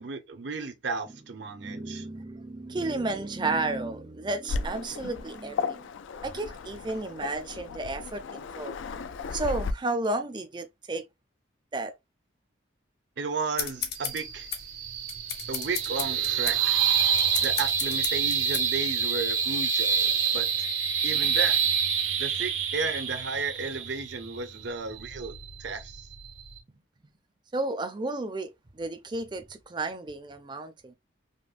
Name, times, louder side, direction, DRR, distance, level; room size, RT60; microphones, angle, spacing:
voice 1, 0.0-2.1 13.2-14.5 15.5-16.8 17.4-20.7 21.0-21.7 22.2-26.0, right 4 dB, 70° right, 0.7 m, -34 dB
voice 2, 1.5-5.9 6.2-8.8 9.3-11.1 11.7-11.9 27.5-30.9, right 2 dB, 25° right, 0.4 m, -32 dB
Waves surf, 4.5-9.7, left 5 dB, 80° left, 0.4 m, -35 dB
sound 1, 13.6-18.7, left 8 dB, 55° left, 1.0 m, -35 dB
sound 2, 14.0-26.6, right 7 dB, 90° right, 1.1 m, -27 dB
5.1 x 2.1 x 2.4 m
head